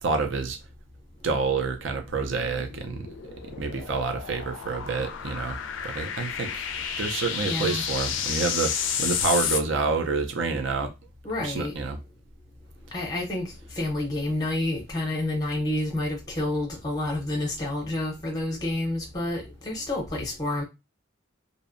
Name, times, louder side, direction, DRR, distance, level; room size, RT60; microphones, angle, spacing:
voice 1, 0.0-0.6 1.2-3.1 3.4-6.7 7.0-10.9 11.4-12.0, right 4 dB, 70° right, 0.5 m, -28 dB
sound 1, 2.1-9.6, left 7 dB, 70° left, 0.3 m, -31 dB
voice 2, 7.4-7.8 11.2-11.7 12.9-20.6, left 1 dB, 20° left, 0.6 m, -29 dB
2.6 x 2.0 x 2.5 m
head